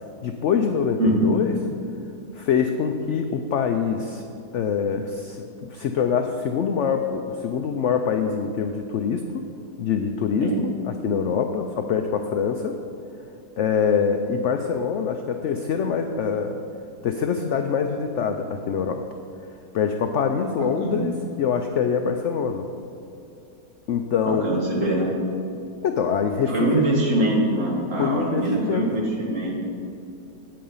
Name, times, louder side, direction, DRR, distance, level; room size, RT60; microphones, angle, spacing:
voice 1, 0.2-1.5 2.3-4.2 4.5-9.4 9.8-12.8 13.6-16.6 17.0-19.1 19.7-22.7 23.9-24.5 25.8-26.9 28.0-28.8, left 6 dB, 80° left, 6 dB, 0.6 m, -24 dB
voice 2, 1.0-1.3 10.4-10.5 20.6-21.0 24.4-25.1 26.5-29.6, right 1 dB, 45° right, -4 dB, 2.5 m, -23 dB
8.7 x 8.6 x 5.5 m, 2.7 s
omnidirectional pair, 1.8 m